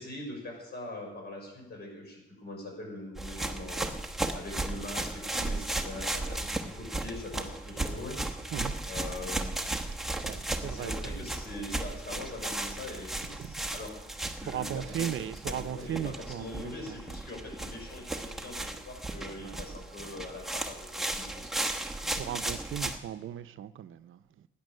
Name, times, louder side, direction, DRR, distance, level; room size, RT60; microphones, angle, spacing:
voice 1, 0.0-8.4 8.9-9.6 10.6-13.9 14.4-21.5, left 2 dB, 50° left, 6.0 m, -42 dB
sound 1, 3.2-23.0, right 2 dB, ahead, 1.0 m, -35 dB
voice 2, 10.2-11.3 13.4-13.6 14.4-17.0 19.4-19.6 21.8-24.5, right 10 dB, 75° right, 0.6 m, -37 dB
17.0 x 10.0 x 6.6 m
wide cardioid pair, 175°, 21 cm